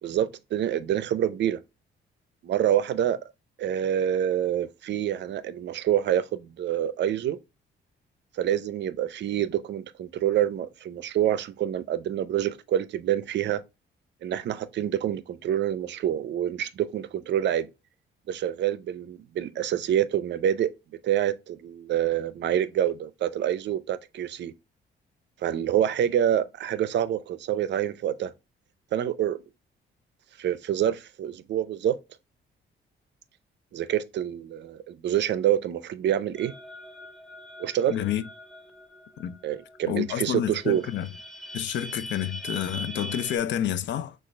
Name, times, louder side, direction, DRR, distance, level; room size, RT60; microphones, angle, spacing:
voice 1, 0.0-1.6 2.4-3.2 3.6-7.4 8.3-13.6 14.2-17.7 18.3-20.7 21.0-24.5 25.4-28.3 28.9-29.4 30.4-32.0 33.7-36.5 37.6-37.9 39.4-40.9, right 10 dB, 65° right, 0.5 m, -27 dB
sound 1, 36.4-39.9 40.3-40.4 40.6-43.4, equal, ahead, 0.6 m, -42 dB
voice 2, 37.9-38.2 39.2-39.4 39.9-41.1 41.5-44.1, left 10 dB, 65° left, 0.5 m, -29 dB
6.3 x 2.4 x 3.1 m
cardioid pair, 90°, 20 cm